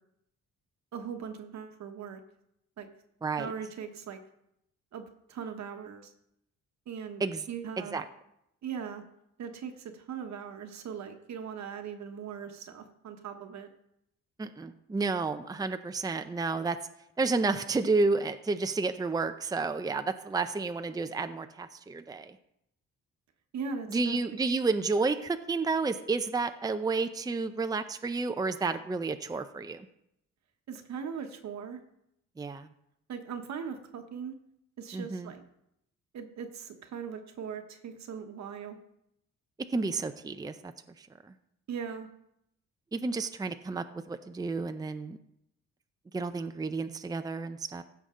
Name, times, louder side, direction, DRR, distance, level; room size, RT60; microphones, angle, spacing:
voice 1, 0.9-2.2 2.8-2.9 3.3-4.2 4.9-5.0 5.3-6.1 6.9-8.0 8.6-9.0 9.4-13.7 23.5-24.2 30.7-31.8 33.1-34.3 34.8-35.4 36.1-38.8 41.7-42.1, right 7 dB, 65° right, 6 dB, 1.2 m, -39 dB
voice 2, 3.2-3.5 7.2-7.4 7.9-8.0 14.4-16.8 17.2-22.4 23.9-29.9 32.4-32.7 34.9-35.3 39.7-40.7 41.0-41.1 42.9-45.2 46.1-47.8, right 3 dB, 15° right, 8 dB, 0.6 m, -31 dB
15.0 x 5.9 x 3.8 m, 0.78 s
cardioid pair, 90°, 30 cm